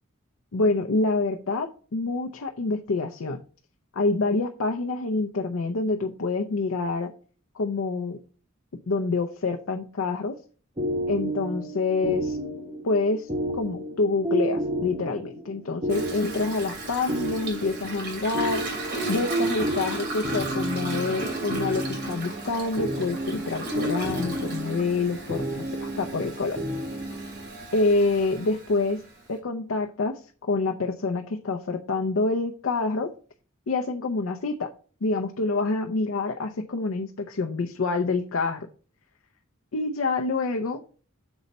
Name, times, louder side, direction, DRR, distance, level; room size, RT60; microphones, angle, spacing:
voice 1, 0.5-3.4 3.9-7.1 7.5-8.2 8.9-10.4 11.1-12.4 12.8-18.6 19.1-26.6 27.7-29.0 29.3-33.1 33.7-34.7 35.0-38.7 39.7-40.8, left 3 dB, 85° left, 5 dB, 0.6 m, -27 dB
sound 1, 10.8-27.5, right 1 dB, 25° right, 1.4 m, -31 dB
Toilet flush, 15.9-29.3, right 3 dB, 55° right, 2.6 m, -36 dB
7.0 x 4.1 x 5.3 m, 0.41 s
head